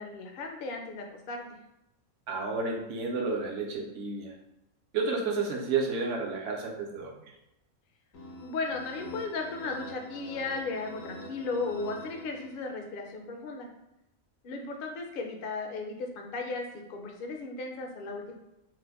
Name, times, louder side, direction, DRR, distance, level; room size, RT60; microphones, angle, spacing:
voice 1, 0.0-1.5 8.4-13.7 14.4-18.3, left 3 dB, 60° left, 2 dB, 0.6 m, -35 dB
voice 2, 2.3-4.3 4.9-7.3, right 4 dB, 70° right, 1 dB, 0.9 m, -31 dB
sound 1, 8.1-12.9, equal, 85° left, 1.1 m, -45 dB
3.2 x 2.1 x 3.4 m, 0.89 s
omnidirectional pair, 1.4 m